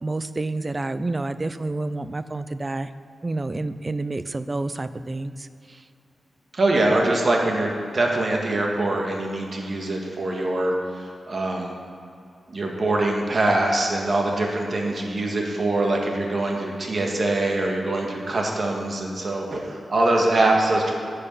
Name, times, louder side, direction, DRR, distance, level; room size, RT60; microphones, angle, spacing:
voice 1, 0.0-2.9 3.2-5.8, right 2 dB, 25° right, 13 dB, 0.4 m, -29 dB
voice 2, 6.5-11.7 12.5-20.9, right 2 dB, 45° right, 0 dB, 1.6 m, -23 dB
11.0 x 6.7 x 5.5 m, 2.5 s
wide cardioid pair, 100°, 0 cm